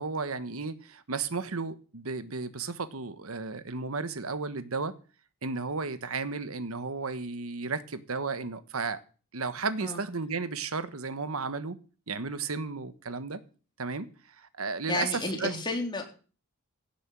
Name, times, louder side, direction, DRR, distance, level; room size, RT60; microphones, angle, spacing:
voice 1, 0.0-4.9 5.4-9.0 9.3-11.8 12.1-13.4 13.8-14.1 14.4-15.6, right 4 dB, 80° right, 1.2 m, -33 dB
voice 2, 14.9-16.0, left 2 dB, 20° left, 3.7 m, -31 dB
17.0 x 7.3 x 7.6 m
head